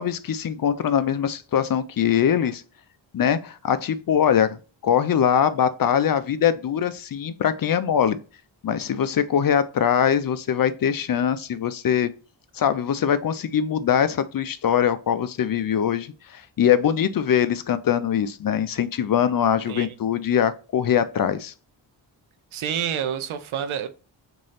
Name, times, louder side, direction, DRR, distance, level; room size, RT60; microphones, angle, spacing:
voice 1, 0.0-2.6 3.1-4.6 4.8-8.2 8.6-12.1 12.5-21.5, left 8 dB, 50° left, 0.5 m, -22 dB
voice 2, 22.5-23.9, right 9 dB, 85° right, 0.6 m, -28 dB
3.1 x 2.7 x 4.0 m
cardioid pair, 60°, 47 cm